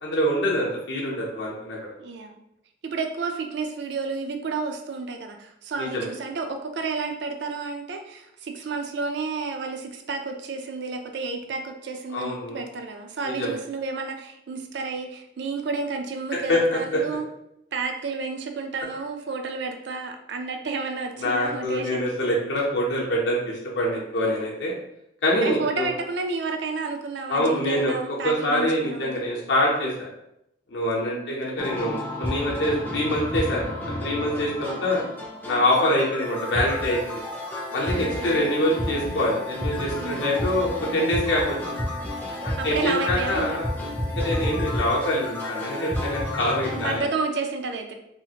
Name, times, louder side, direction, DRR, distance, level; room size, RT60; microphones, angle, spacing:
voice 1, 0.0-1.9 5.8-6.1 12.1-12.6 13.2-13.6 16.3-17.0 21.2-24.7 25.2-25.9 27.3-30.1 30.7-35.0 35.4-37.2 37.7-41.8 42.6-43.7 44.2-47.1, left 1 dB, 70° left, -4 dB, 0.7 m, -25 dB
voice 2, 2.0-2.4 2.8-17.3 17.7-22.1 25.4-29.2 31.1-31.4 37.9-38.6 40.0-40.3 42.6-43.6 46.7-47.9, right 4 dB, 65° right, 5 dB, 0.4 m, -31 dB
sound 1, 31.6-47.0, left 1 dB, 10° left, 0.4 m, -31 dB
2.8 x 2.4 x 2.8 m, 0.80 s
head